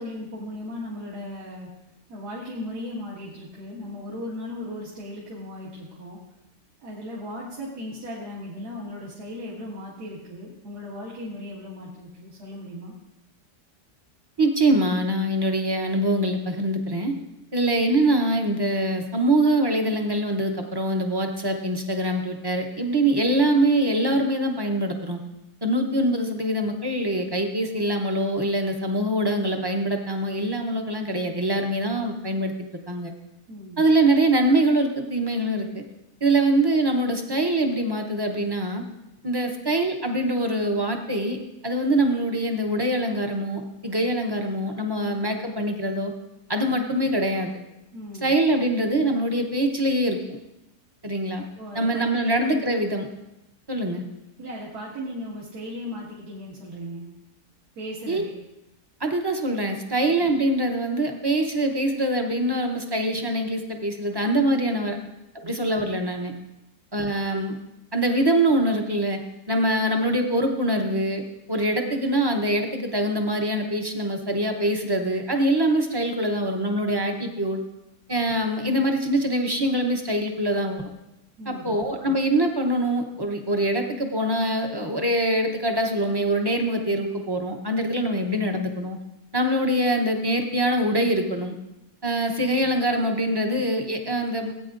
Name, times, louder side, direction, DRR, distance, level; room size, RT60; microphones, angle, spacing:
voice 1, 0.0-1.7 2.1-6.2 6.8-12.9 33.5-33.9 47.9-48.3 51.6-52.7 54.4-57.1 57.7-58.3 59.9-60.1 64.9-65.1 65.4-65.5 81.4-81.8, left 1 dB, 75° right, -6 dB, 2.3 m, -37 dB
voice 2, 14.4-17.1 17.5-25.2 25.6-33.1 33.8-35.8 36.2-38.8 39.2-41.4 41.6-46.1 46.5-47.5 48.2-50.2 51.0-51.4 51.7-53.1 53.7-54.0 58.1-58.2 59.0-65.0 65.4-66.3 66.9-67.5 67.9-69.2 69.5-71.2 71.5-77.6 78.1-80.9 81.5-89.0 89.3-91.6 92.0-94.5, right 1 dB, 25° right, 3 dB, 0.5 m, -24 dB
17.5 x 8.9 x 2.5 m, 0.93 s
omnidirectional pair, 1.7 m